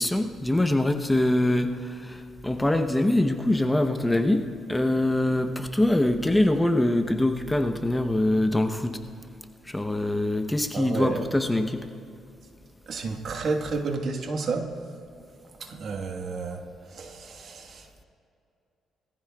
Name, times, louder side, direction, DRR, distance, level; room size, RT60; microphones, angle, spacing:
voice 1, 0.0-9.0 9.6-11.9, left 1 dB, 10° left, 6 dB, 0.8 m, -24 dB
voice 2, 10.7-11.2 12.9-14.7 15.6-18.0, right 4 dB, 60° right, 4 dB, 1.4 m, -31 dB
21.5 x 15.0 x 2.3 m, 2.6 s
cardioid pair, 90°, 0 cm